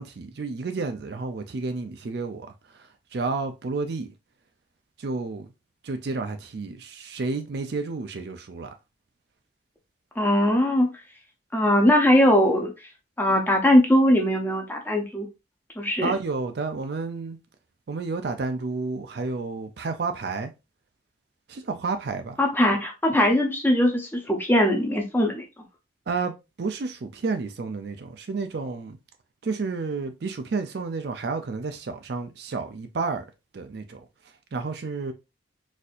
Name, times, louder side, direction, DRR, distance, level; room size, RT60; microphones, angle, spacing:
voice 1, 0.0-2.5 3.1-4.1 5.0-5.5 5.8-8.7 16.0-17.4 17.9-20.5 21.5-22.4 26.1-26.3 26.6-29.0 29.4-33.2 33.5-34.0 34.5-35.1, right 4 dB, 55° right, 0.4 m, -30 dB
voice 2, 10.2-10.9 11.5-12.7 13.2-15.3 15.8-16.1 22.4-25.4, left 1 dB, 10° left, 0.6 m, -20 dB
4.1 x 2.6 x 2.4 m
head